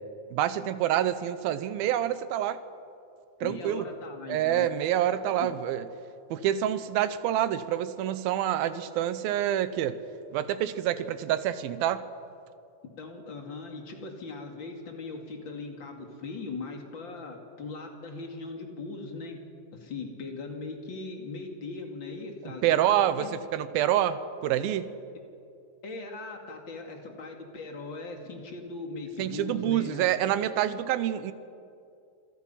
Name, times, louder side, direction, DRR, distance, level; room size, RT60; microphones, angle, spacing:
voice 1, 0.3-2.6 3.4-3.9 4.3-5.9 6.3-10.0 10.3-12.0 22.6-23.3 23.5-24.9 29.2-31.3, right 11 dB, 80° right, 13 dB, 2.6 m, -27 dB
voice 2, 3.4-4.7 5.4-5.5 13.0-19.4 19.7-23.3 25.8-30.0, left 3 dB, 35° left, 2 dB, 2.7 m, -39 dB
27.5 x 22.0 x 5.7 m, 2.6 s
omnidirectional pair, 4.4 m